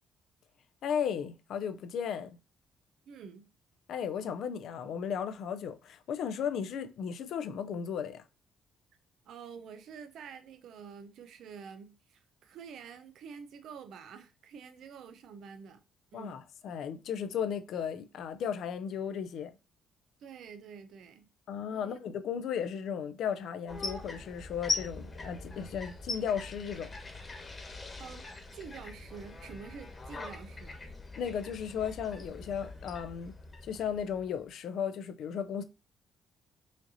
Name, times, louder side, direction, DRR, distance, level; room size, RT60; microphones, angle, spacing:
voice 1, 0.8-2.3 3.9-8.2 16.1-19.5 21.5-26.9 31.2-33.3 33.6-35.6, left 7 dB, 70° left, 0.5 m, -35 dB
voice 2, 3.1-3.5 9.3-15.8 16.1-16.4 20.2-21.3 21.7-22.0 28.0-28.3 28.5-30.8, right 6 dB, 70° right, 0.5 m, -48 dB
sound 1, 23.7-34.5, left 3 dB, 25° left, 1.2 m, -41 dB
4.9 x 2.8 x 2.7 m
cardioid pair, 95°, 0 cm